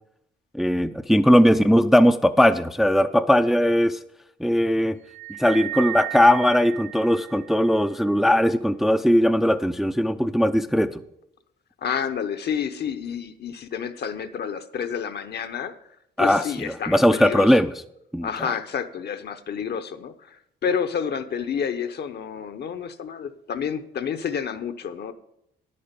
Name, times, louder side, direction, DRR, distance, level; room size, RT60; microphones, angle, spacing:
voice 1, 0.5-4.0 4.4-5.0 5.4-11.0 16.2-17.7 18.1-18.5, equal, ahead, 9 dB, 0.4 m, -19 dB
sound 1, 5.1-7.8, right 19 dB, 80° right, 0.5 m, -34 dB
voice 2, 11.8-15.7 16.2-17.5 18.2-25.1, left 7 dB, 55° left, 10 dB, 0.8 m, -29 dB
10.0 x 8.6 x 5.2 m, 0.79 s
cardioid pair, 90°, 20 cm